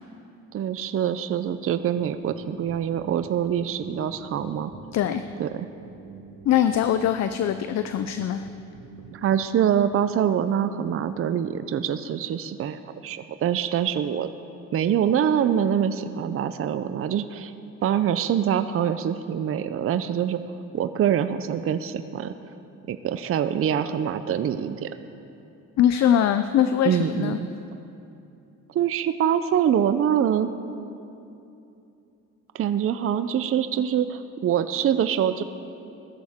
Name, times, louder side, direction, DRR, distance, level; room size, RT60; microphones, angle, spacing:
voice 1, 0.5-4.7 5.4-5.7 9.1-14.3 14.7-17.5 17.8-20.4 20.7-22.4 22.9-24.9 26.8-27.5 28.7-30.5 32.5-35.4, right 9 dB, 50° right, 11 dB, 0.5 m, -24 dB
sound 1, 2.0-9.9, right 5 dB, 75° right, 1.3 m, -47 dB
voice 2, 4.9-5.2 6.4-8.5 25.8-27.4, left 10 dB, 60° left, 10 dB, 0.5 m, -22 dB
16.0 x 13.5 x 3.6 m, 2.8 s
cardioid pair, 90°, 30 cm